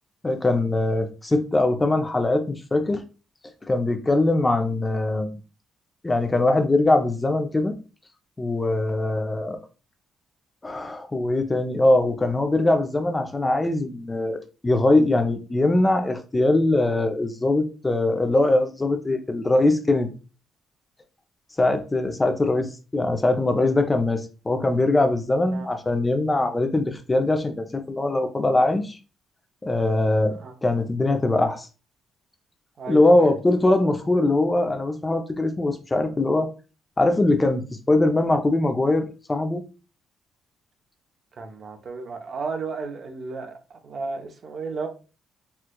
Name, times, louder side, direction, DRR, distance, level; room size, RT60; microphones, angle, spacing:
voice 1, 0.2-3.0 3.6-5.4 6.0-7.7 8.4-9.6 10.6-14.4 14.6-20.1 21.6-29.0 29.6-30.3 30.6-31.7 32.9-36.5 37.0-39.6, left 2 dB, 20° left, 0.5 m, -22 dB
voice 2, 32.8-33.3 41.3-44.9, right 4 dB, 50° right, 0.6 m, -33 dB
4.3 x 2.3 x 2.2 m
cardioid pair, 90°, 0 cm